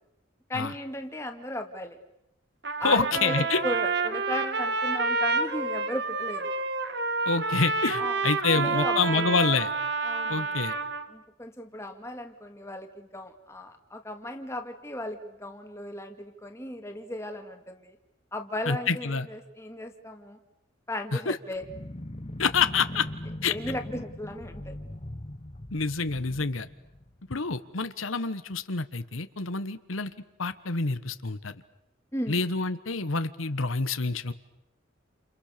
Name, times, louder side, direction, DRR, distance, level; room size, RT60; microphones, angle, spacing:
voice 1, 0.5-2.0 2.8-6.5 8.0-8.2 8.5-9.4 10.0-10.6 11.1-18.0 18.3-20.4 20.9-21.6 23.5-24.8 32.1-32.4, left 1 dB, 15° left, 5 dB, 2.3 m, -36 dB
Trumpet, 2.6-11.1, right 4 dB, 55° right, 1.8 m, -29 dB
voice 2, 2.8-3.6 7.3-9.7 10.3-10.7 18.7-19.3 21.1-21.4 22.4-23.1 23.4-23.5 25.7-26.7 27.3-30.1 30.4-31.6 32.3-34.3, left 4 dB, 90° left, 11 dB, 1.3 m, -27 dB
sound 1, 21.5-27.5, left 1 dB, 30° left, 1.1 m, -40 dB
29.5 x 29.0 x 6.8 m, 0.85 s
head